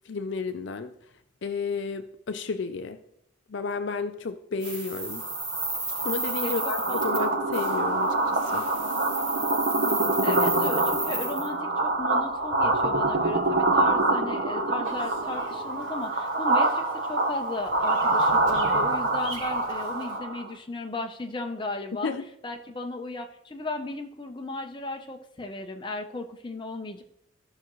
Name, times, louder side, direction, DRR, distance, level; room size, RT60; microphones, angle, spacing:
voice 1, 0.1-0.9 1.4-3.0 3.5-5.2 6.0-8.7 22.0-22.2, left 4 dB, 60° left, 9 dB, 0.5 m, -32 dB
sound 1, 4.6-7.2 7.5-7.8 8.3-11.5, right 2 dB, 30° right, 4.2 m, -33 dB
sound 2, 5.1-20.5, right 2 dB, 50° right, 1.0 m, -26 dB
voice 2, 6.4-7.0 10.2-22.2 22.4-27.0, left 2 dB, 25° left, 4 dB, 0.7 m, -35 dB
Bird vocalization bird call bird song, 14.8-20.2, right 2 dB, 80° right, 3.0 m, -45 dB
15.0 x 5.9 x 3.1 m, 0.77 s
head